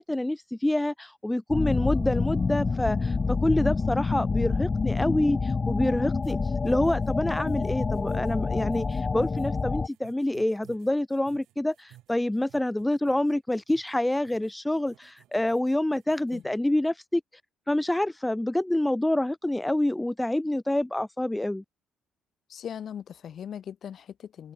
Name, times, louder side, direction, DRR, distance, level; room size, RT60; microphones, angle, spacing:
voice 1, 0.0-6.4 6.6-17.2 17.7-21.6, left 1 dB, 10° left, 0.4 m, -27 dB
sound 1, 1.5-9.9, left 4 dB, 30° left, 0.7 m, -27 dB
sound 2, 6.2-16.5, right 14 dB, 85° right, 7.8 m, -58 dB
voice 2, 22.5-24.5, left 9 dB, 60° left, 1.6 m, -39 dB
open air
cardioid pair, 90°, 0 cm